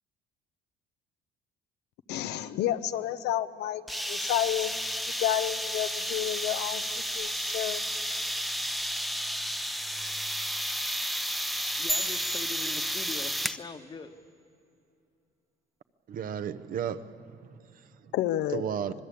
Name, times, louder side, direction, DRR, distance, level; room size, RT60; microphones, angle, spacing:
voice 1, 2.1-4.8 5.1-7.9 18.1-18.7, left 12 dB, 85° left, 0.9 m, -30 dB
sound 1, 3.9-13.6, equal, ahead, 0.7 m, -32 dB
voice 2, 11.8-14.1, left 4 dB, 25° left, 1.2 m, -42 dB
sound 2, 11.9-13.6, right 1 dB, 15° right, 1.1 m, -36 dB
voice 3, 16.1-17.8 18.5-18.9, right 8 dB, 55° right, 0.9 m, -34 dB
26.0 x 19.5 x 8.5 m
cardioid pair, 110°, 17 cm